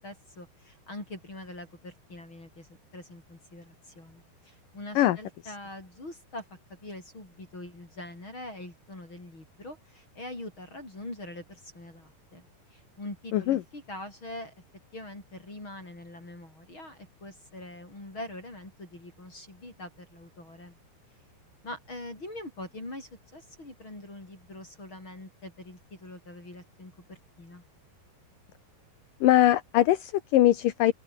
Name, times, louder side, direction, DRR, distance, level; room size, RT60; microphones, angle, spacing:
voice 1, 0.0-14.5 14.9-20.8 21.6-27.6, left 1 dB, 25° left, 8.5 m, -43 dB
voice 2, 13.3-13.6 29.2-30.9, left 13 dB, 65° left, 2.5 m, -21 dB
omnidirectional pair, 4.8 m